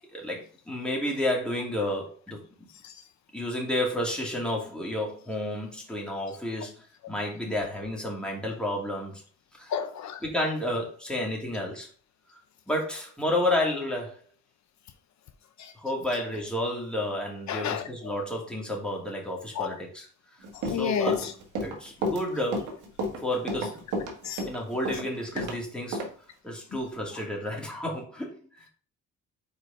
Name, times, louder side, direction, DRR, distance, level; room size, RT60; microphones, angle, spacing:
voice 1, 0.1-2.7 3.3-9.2 9.5-9.7 10.2-11.9 12.7-14.2 15.8-20.1 20.6-21.2 21.6-22.8 23.2-23.8 24.4-26.0 26.4-28.7, left 1 dB, 5° left, 2.7 m, -31 dB
voice 2, 9.7-10.2 15.6-15.7 17.5-17.9 19.5-19.7 20.7-21.3 24.2-24.5, left 9 dB, 70° left, 0.7 m, -30 dB
Run, 20.4-25.6 25.9-26.1, equal, 85° right, 1.6 m, -31 dB
4.9 x 4.8 x 4.3 m
cardioid pair, 90°, 30 cm